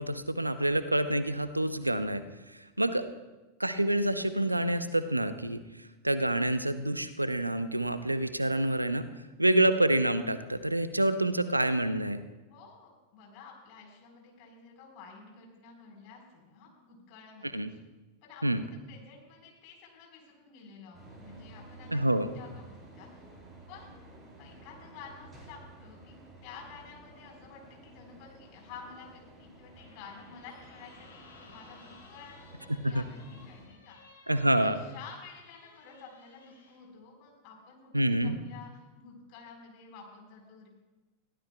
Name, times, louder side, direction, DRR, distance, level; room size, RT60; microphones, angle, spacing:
voice 1, 0.0-2.2 2.5-3.0 3.6-5.6 6.0-9.0 9.4-12.2 17.5-17.7 18.4-18.6 21.9-22.3 32.8-33.0 34.3-34.8 37.9-38.4, right 1 dB, 85° right, 12 dB, 0.6 m, -27 dB
voice 2, 12.5-17.8 18.2-23.2 23.7-23.9 24.4-40.7, left 5 dB, 45° left, 0 dB, 4.2 m, -51 dB
sound 1, 20.9-33.7, right 2 dB, 10° right, 5.4 m, -53 dB
sound 2, 29.7-36.8, left 3 dB, 70° left, 4.1 m, -57 dB
21.5 x 15.0 x 2.3 m, 1.1 s
figure-of-eight pair, 90°, 0 cm